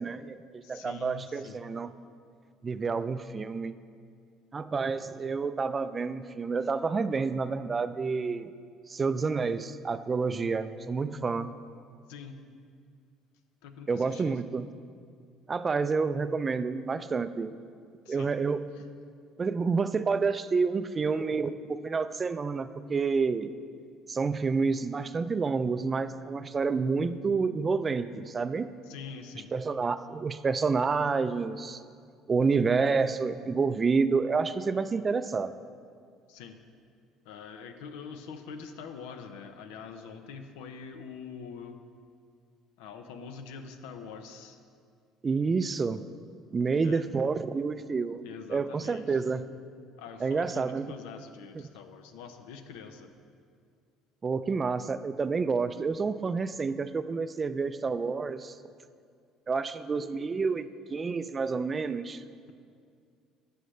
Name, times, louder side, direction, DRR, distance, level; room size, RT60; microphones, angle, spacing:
voice 1, 0.0-1.9 2.6-3.8 4.5-8.5 8.9-11.6 13.9-14.7 15.5-17.5 18.1-18.7 19.4-23.5 24.1-28.7 29.5-31.8 32.3-35.5 45.2-46.0 46.5-48.2 48.5-49.5 50.2-50.9 54.2-58.5 59.5-62.2, right 4 dB, 30° right, 13 dB, 0.4 m, -29 dB
voice 2, 0.6-1.6 12.1-12.4 13.6-14.4 18.0-18.3 28.9-29.5 36.3-36.6 37.2-41.8 42.8-44.6 46.8-47.0 48.2-49.2 50.0-53.1, left 6 dB, 90° left, 7 dB, 0.7 m, -44 dB
12.5 x 7.8 x 3.2 m, 2.2 s
supercardioid pair, 95°, 0 cm